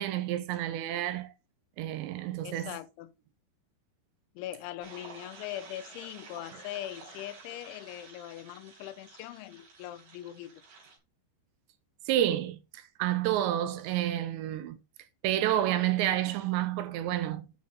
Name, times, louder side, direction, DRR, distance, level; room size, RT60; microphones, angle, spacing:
voice 1, 0.0-1.3 1.8-2.7 12.1-14.8 15.2-17.5, right 12 dB, 80° right, 3.0 m, -29 dB
voice 2, 2.4-3.1 4.4-10.6, left 13 dB, 85° left, 3.1 m, -41 dB
sound 1, 4.8-11.0, right 4 dB, 55° right, 5.8 m, -51 dB
9.5 x 6.4 x 4.0 m
omnidirectional pair, 5.3 m